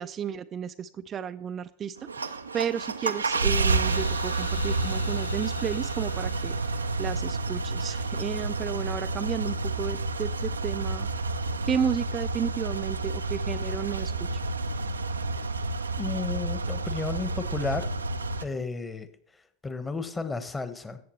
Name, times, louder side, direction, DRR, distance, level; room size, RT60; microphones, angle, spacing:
voice 1, 0.0-6.6 7.0-11.1 11.7-14.4, right 8 dB, 30° right, 10 dB, 0.5 m, -32 dB
sound 1, 2.0-18.4, right 3 dB, 85° right, 0.6 m, -30 dB
sound 2, 3.8-7.6, left 8 dB, 75° left, 0.8 m, -46 dB
voice 2, 16.0-17.9 18.4-21.0, left 3 dB, 15° left, 10 dB, 1.2 m, -33 dB
14.0 x 8.5 x 3.1 m, 0.63 s
figure-of-eight pair, 85°, 0 cm